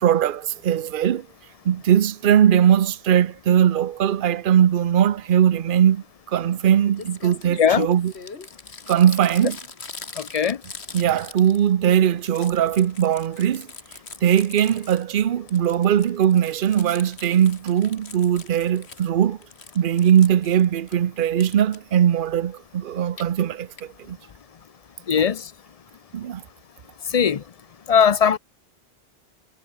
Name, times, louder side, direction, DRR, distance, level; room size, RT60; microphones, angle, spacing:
voice 1, 0.0-1.3 1.6-8.1 8.9-9.6 10.9-13.7 14.2-19.4 19.7-23.7 24.1-24.2 26.1-26.4, right 9 dB, 60° right, 0.8 m, -20 dB
Crumpling crinkling, 6.6-6.7 7.0-11.9 12.1-15.2 15.5-19.1 19.4-20.9 21.4-21.8 22.9-23.2 23.8-23.9 24.1-24.2 24.4-24.5, left 4 dB, 90° left, 2.3 m, -41 dB
voice 2, 10.2-10.6 25.1-25.5 27.1-27.4 27.9-28.4, left 7 dB, 40° left, 0.6 m, -19 dB
omnidirectional pair, 1.1 m